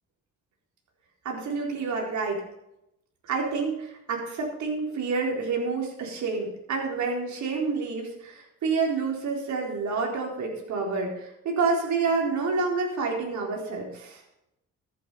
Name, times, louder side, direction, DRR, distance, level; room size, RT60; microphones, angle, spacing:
voice 1, 1.2-2.4 3.2-14.2, right 4 dB, 70° right, 0 dB, 4.1 m, -28 dB
14.5 x 8.5 x 5.6 m, 0.84 s
cardioid pair, 90°, 30 cm